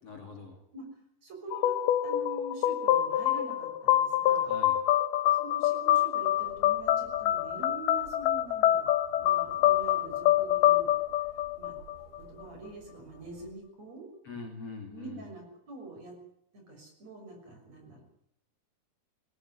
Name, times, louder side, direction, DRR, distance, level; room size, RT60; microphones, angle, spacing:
voice 1, 0.0-0.6 4.4-4.8 14.2-15.3, left 4 dB, 40° left, 3 dB, 3.7 m, -43 dB
voice 2, 1.2-1.8 2.0-4.5 5.3-8.9 9.2-10.9 11.6-11.7 12.2-14.1 14.9-16.1 16.5-18.0, right 2 dB, 45° right, 3 dB, 7.4 m, -45 dB
sound 1, 1.5-12.2, left 12 dB, 80° left, 3.0 m, -26 dB
sound 2, 6.3-13.5, right 4 dB, 70° right, 8.1 m, -55 dB
21.0 x 16.5 x 9.7 m, 0.70 s
omnidirectional pair, 4.4 m